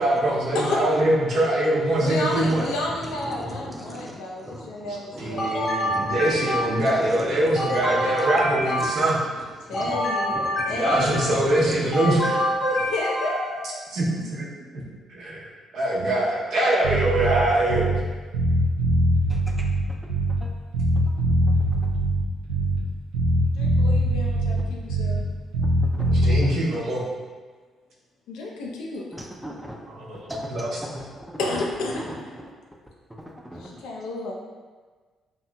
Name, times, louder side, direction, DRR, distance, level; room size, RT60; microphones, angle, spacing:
voice 1, 0.0-2.7 5.2-9.2 10.7-12.5 13.9-14.0 14.3-14.5 14.7-14.8 15.1-15.5 15.7-17.9 26.1-27.0 29.9-30.2 30.5-30.8, right 1 dB, 65° right, -6 dB, 0.7 m, -23 dB
voice 2, 0.5-1.0 2.0-5.9 9.7-11.3 12.6-13.8 23.5-25.2 28.3-29.1 31.4-32.3 33.6-34.3, left 2 dB, 75° left, -1 dB, 0.4 m, -31 dB
voice 3, 1.9-2.5 3.0-8.9 9.6-10.0 10.3-10.4 10.7-11.8 12.0-12.1 19.3-19.7 20.4-20.5 21.5-21.6 25.9-26.5 29.1-29.8 30.3-30.5 30.8-31.4 31.9-32.2 33.1-33.7, equal, 5° right, 0 dB, 0.5 m, -38 dB
sound 1, 5.4-7.0 7.6-9.3 9.7-11.4 11.9-13.6, equal, 50° left, 0.8 m, -27 dB
Bass guitar, 16.8-18.1 18.3-20.5 20.7-22.9 23.1-25.3 25.5-26.4, right 1 dB, 85° right, 0.3 m, -22 dB
2.8 x 2.6 x 2.2 m, 1.4 s
hypercardioid pair, 50°, 0 cm